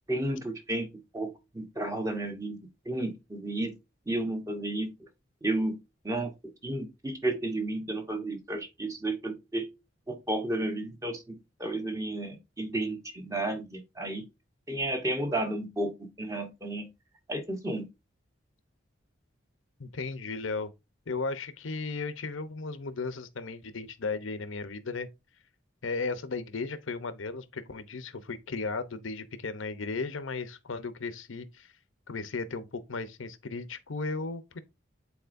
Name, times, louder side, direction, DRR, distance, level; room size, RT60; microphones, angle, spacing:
voice 1, 0.1-0.9 1.1-2.6 2.9-3.8 4.1-4.9 5.4-5.8 6.0-6.3 6.6-9.7 10.1-14.2 14.7-16.9 17.3-17.9, right 1 dB, 15° right, 1.0 m, -32 dB
voice 2, 19.8-20.7 21.1-25.1 25.8-31.7 32.1-34.6, left 4 dB, 80° left, 0.8 m, -35 dB
9.3 x 4.2 x 2.6 m
head